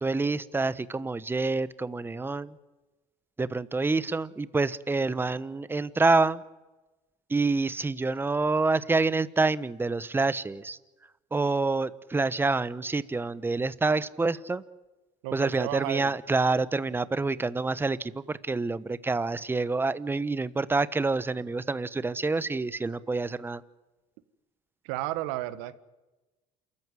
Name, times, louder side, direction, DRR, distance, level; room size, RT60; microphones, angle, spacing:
voice 1, 0.0-2.6 3.4-6.4 7.3-10.8 11.3-14.6 15.3-23.6, right 3 dB, 15° right, 16 dB, 1.0 m, -27 dB
voice 2, 15.2-16.1 24.8-25.7, right 16 dB, 85° right, 13 dB, 1.5 m, -33 dB
28.0 x 14.5 x 9.7 m, 1.1 s
supercardioid pair, 105°, 16 cm